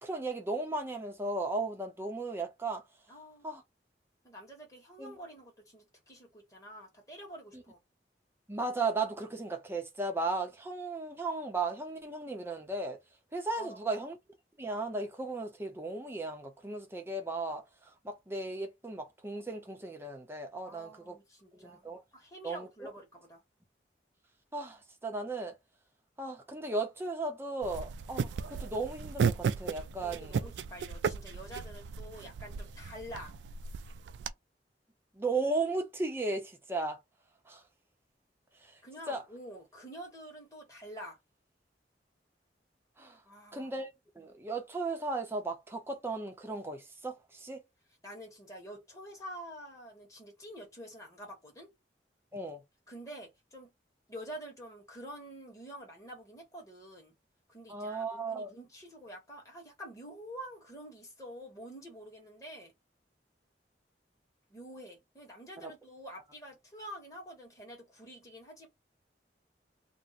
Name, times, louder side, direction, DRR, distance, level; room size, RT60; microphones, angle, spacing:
voice 1, 0.0-2.8 3.4-3.6 5.0-5.1 7.5-7.6 8.5-13.0 13.3-14.2 14.6-21.2 21.5-22.0 22.4-22.9 24.5-25.5 26.2-30.5 35.1-37.0 37.5-37.6 38.6-38.8 39.1-39.2 43.0-43.2 43.5-43.9 44.2-47.6 52.3-52.6 57.7-58.5 65.6-65.7, right 3 dB, 15° right, 0.6 m, -36 dB
voice 2, 3.1-3.6 4.2-7.8 13.6-14.0 20.7-21.9 22.1-23.4 30.0-33.3 38.8-41.2 43.2-43.7 48.0-51.7 52.9-53.7 54.1-57.1 57.5-62.7 64.5-68.7, equal, 20° left, 1.3 m, -47 dB
sound 1, 27.6-34.3, right 6 dB, 80° right, 0.3 m, -35 dB
2.6 x 2.1 x 4.0 m
head